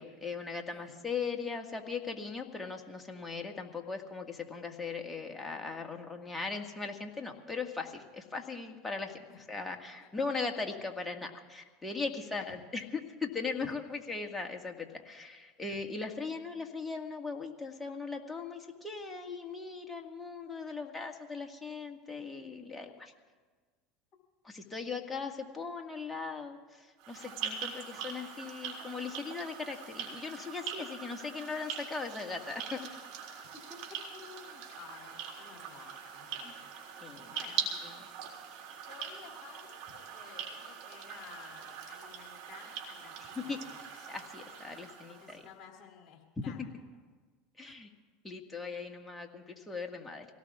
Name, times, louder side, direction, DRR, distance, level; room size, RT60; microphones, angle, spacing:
voice 1, 0.0-9.2 9.5-23.1 24.4-32.8 36.4-36.5 37.0-37.3 43.5-43.6 44.1-45.4 46.5-46.6 47.6-47.9 48.2-50.3, left 4 dB, 15° left, 2 dB, 1.8 m, -39 dB
sound 1, 27.0-45.5, right 7 dB, 65° right, 2.5 m, -42 dB
voice 2, 33.5-36.7 37.3-37.6 38.9-44.1 45.1-46.7 47.6-47.7, left 7 dB, 50° left, 1 dB, 2.7 m, -54 dB
25.5 x 17.5 x 2.5 m, 1.4 s
hypercardioid pair, 85°, 0 cm